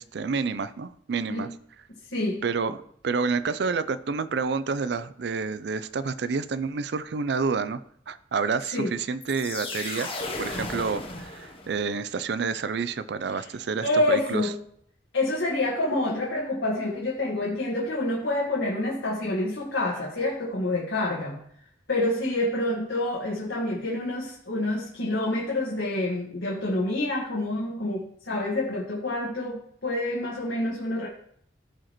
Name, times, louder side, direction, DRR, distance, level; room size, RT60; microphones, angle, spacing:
voice 1, 0.0-1.5 2.4-2.8 3.0-7.8 8.1-14.5, right 5 dB, 65° right, 14 dB, 0.4 m, -29 dB
voice 2, 2.1-2.4 8.7-8.9 13.3-13.5 13.8-14.5 15.1-21.4 21.9-31.1, left 1 dB, 85° left, -4 dB, 1.6 m, -27 dB
sound 1, 9.2-12.0, left 2 dB, 30° left, 0.9 m, -35 dB
14.5 x 4.9 x 3.0 m, 0.67 s
head